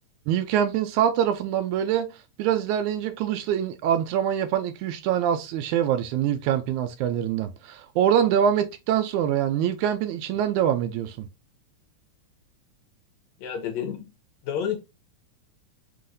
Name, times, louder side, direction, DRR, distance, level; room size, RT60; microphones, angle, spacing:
voice 1, 0.3-2.1 2.4-11.3, right 9 dB, 80° right, 1.8 m, -24 dB
voice 2, 13.4-14.1 14.4-14.8, left 8 dB, 75° left, 1.8 m, -29 dB
5.7 x 3.0 x 2.6 m
omnidirectional pair, 3.6 m